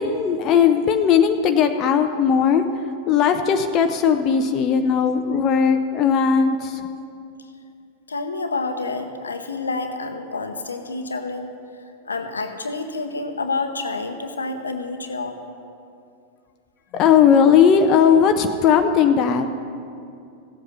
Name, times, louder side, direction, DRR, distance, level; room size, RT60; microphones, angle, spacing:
voice 1, 0.0-2.7 3.1-6.8 16.9-19.5, left 7 dB, 35° left, 7 dB, 0.6 m, -17 dB
voice 2, 8.1-11.5 12.1-15.4, left 3 dB, 75° left, 8 dB, 0.8 m, -28 dB
16.0 x 8.0 x 5.7 m, 2.5 s
figure-of-eight pair, 90°, 0 cm